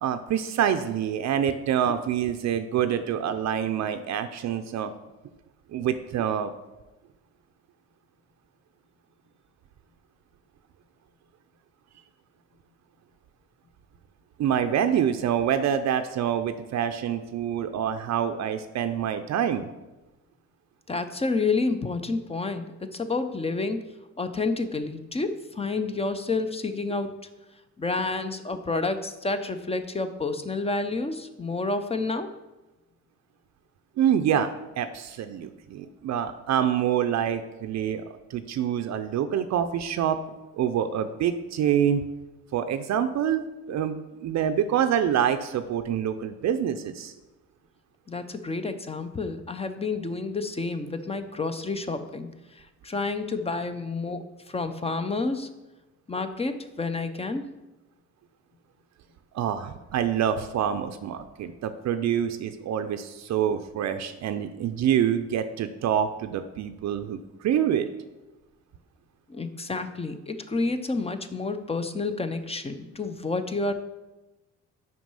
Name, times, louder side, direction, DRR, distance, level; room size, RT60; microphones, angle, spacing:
voice 1, 0.0-4.9 5.7-6.5 14.4-19.7 34.0-38.0 38.3-40.2 40.6-42.0 42.5-47.1 59.3-67.9, right 9 dB, 65° right, 8 dB, 0.5 m, -26 dB
voice 2, 20.9-23.8 24.2-27.2 27.8-32.3 48.1-55.5 56.1-57.4 69.3-73.7, left 3 dB, 20° left, 9 dB, 0.6 m, -29 dB
6.0 x 4.6 x 5.5 m, 1.1 s
cardioid pair, 90°, 30 cm